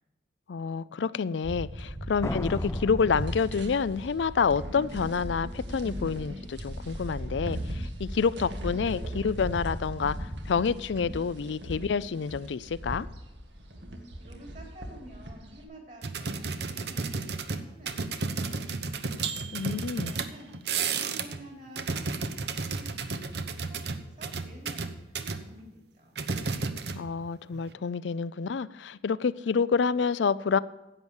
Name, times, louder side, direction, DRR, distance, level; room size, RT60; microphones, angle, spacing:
voice 1, 0.5-13.1 19.5-20.1 26.9-30.6, left 5 dB, 85° left, 17 dB, 0.4 m, -28 dB
sound 1, 1.4-15.6, equal, 85° right, 1.8 m, -37 dB
Slam, 2.2-4.1, left 2 dB, 15° left, 0.3 m, -36 dB
voice 2, 14.2-18.8 19.3-20.5 20.9-26.2, right 1 dB, 45° right, 1 dB, 3.6 m, -50 dB
sound 2, 16.0-21.4 21.7-25.4 26.2-27.3 27.5-27.7, right 4 dB, 65° right, 0.9 m, -32 dB
11.0 x 8.1 x 7.1 m, 1.1 s
head